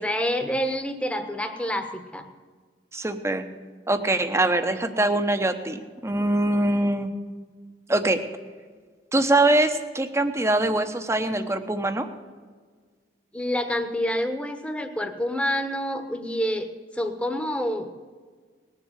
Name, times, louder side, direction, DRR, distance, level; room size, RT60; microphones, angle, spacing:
voice 1, 0.0-2.3 13.3-17.9, equal, 5° left, 6 dB, 1.1 m, -28 dB
voice 2, 2.9-3.5 3.9-7.1 7.9-8.2 9.1-12.1, right 2 dB, 15° right, 8 dB, 0.9 m, -23 dB
19.0 x 7.5 x 8.1 m, 1.6 s
head